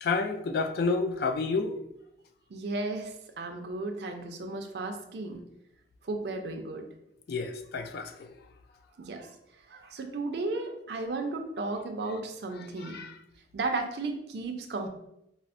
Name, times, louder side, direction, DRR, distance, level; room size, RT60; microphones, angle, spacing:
voice 1, 0.0-1.8 7.3-8.1 12.9-13.1, left 4 dB, 60° left, 0.3 m, -29 dB
voice 2, 2.5-5.4 6.0-6.9 9.0-9.3 9.7-13.0 13.5-14.9, right 3 dB, 65° right, 0.4 m, -34 dB
4.2 x 2.0 x 2.5 m
head